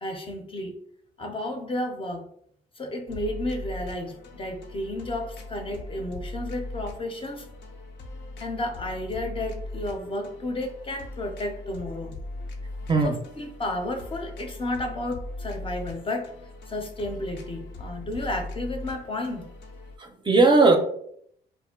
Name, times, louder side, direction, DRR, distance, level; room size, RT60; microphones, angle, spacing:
voice 1, 0.0-0.8 1.2-2.3 2.8-7.5 8.4-12.1 13.0-16.3 16.7-19.5, left 1 dB, 30° left, 4 dB, 0.5 m, -32 dB
sound 1, 3.1-20.0, left 2 dB, 75° left, 0.5 m, -39 dB
voice 2, 20.0-20.8, right 3 dB, 25° right, 4 dB, 0.5 m, -18 dB
2.5 x 2.1 x 3.6 m, 0.68 s
cardioid pair, 85°, 18 cm